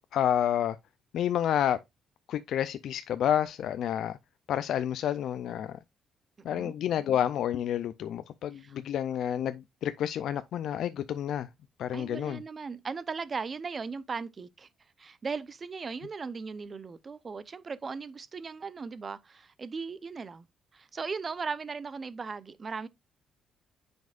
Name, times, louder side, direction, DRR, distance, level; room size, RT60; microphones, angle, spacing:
voice 1, 0.1-0.8 1.1-1.8 2.3-4.2 4.5-5.8 6.4-11.5 11.8-12.4, left 10 dB, 75° left, 0.4 m, -29 dB
voice 2, 11.9-14.7 15.0-20.5 20.7-22.9, right 5 dB, 40° right, 0.7 m, -38 dB
9.2 x 5.3 x 2.4 m
cardioid pair, 90°, 0 cm